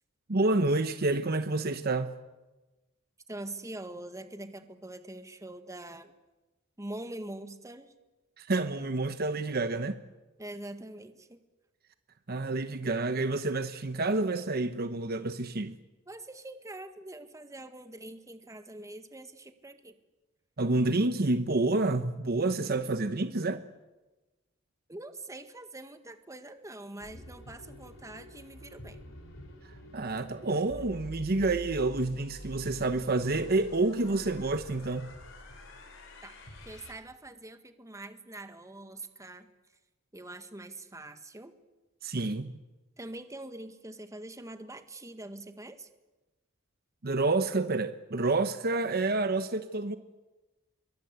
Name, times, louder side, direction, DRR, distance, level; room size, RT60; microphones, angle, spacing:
voice 1, 0.3-2.1 8.4-10.0 12.3-15.8 20.6-23.6 29.9-35.1 42.0-42.5 47.0-50.0, right 2 dB, 50° right, 1.0 m, -28 dB
voice 2, 3.3-6.1 6.8-7.9 10.4-11.4 16.1-20.0 24.9-29.0 36.2-36.4 36.6-39.5 40.1-41.5 43.0-45.9, right 2 dB, 15° right, 1.6 m, -44 dB
sound 1, 27.0-36.9, left 1 dB, 65° left, 4.5 m, -47 dB
26.0 x 23.0 x 8.1 m
head